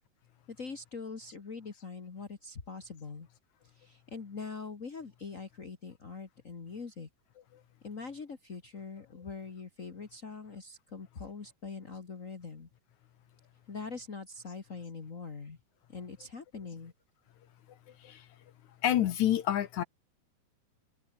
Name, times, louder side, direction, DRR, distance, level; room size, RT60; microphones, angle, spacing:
voice 1, 0.5-3.3 3.6-7.1 7.8-12.7 13.7-15.6 15.9-16.9, left 4 dB, 45° left, 1.0 m, -43 dB
voice 2, 18.8-19.8, left 11 dB, 70° left, 1.9 m, -28 dB
omnidirectional pair, 4.7 m